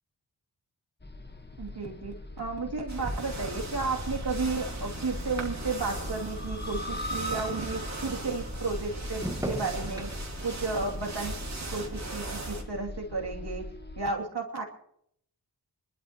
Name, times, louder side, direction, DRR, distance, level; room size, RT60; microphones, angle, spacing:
sound 1, 1.0-14.1, left 1 dB, 25° left, 1.2 m, -41 dB
sound 2, 1.3-8.0 8.4-12.9 13.2-13.7, right 1 dB, 10° right, 1.4 m, -44 dB
voice 1, 1.6-10.1 10.4-11.3 11.7-13.7 14.0-14.6, right 3 dB, 65° right, -1 dB, 2.7 m, -33 dB
sound 3, 2.9-12.6, right 2 dB, 40° right, 2.9 m, -38 dB
25.5 x 12.5 x 2.9 m, 0.68 s
cardioid pair, 50°, 42 cm